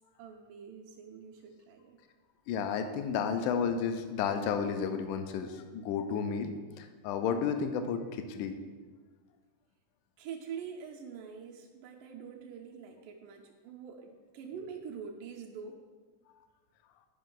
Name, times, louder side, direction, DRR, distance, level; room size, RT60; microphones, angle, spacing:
voice 1, 0.2-2.0 10.2-15.8, right 6 dB, 80° right, 1 dB, 2.2 m, -45 dB
voice 2, 2.5-8.5, left 6 dB, 80° left, 7 dB, 2.1 m, -32 dB
10.0 x 5.2 x 3.8 m, 1.4 s
omnidirectional pair, 3.7 m